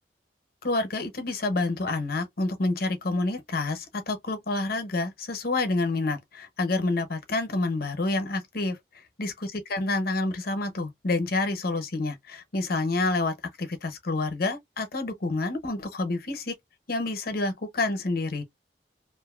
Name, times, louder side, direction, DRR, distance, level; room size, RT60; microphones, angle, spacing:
voice 1, 0.6-8.8 9.2-9.3 9.7-16.5 16.9-18.4, left 2 dB, 55° left, 0.8 m, -28 dB
2.7 x 2.5 x 2.4 m
head